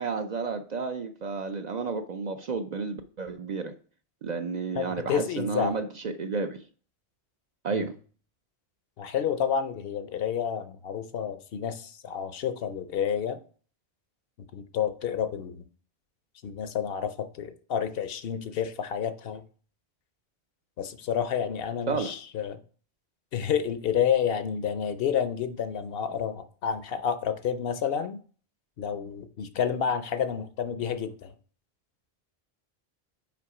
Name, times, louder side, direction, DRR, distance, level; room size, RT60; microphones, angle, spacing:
voice 1, 0.0-3.7 4.2-6.6 7.6-7.9 21.9-22.1, right 4 dB, 55° right, 0.5 m, -31 dB
voice 2, 4.8-5.7 7.7-7.9 9.0-13.4 14.5-15.6 16.4-19.4 20.8-22.6 23.3-28.2 28.8-31.3, left 8 dB, 70° left, 0.8 m, -29 dB
5.9 x 4.8 x 4.8 m
omnidirectional pair, 1.1 m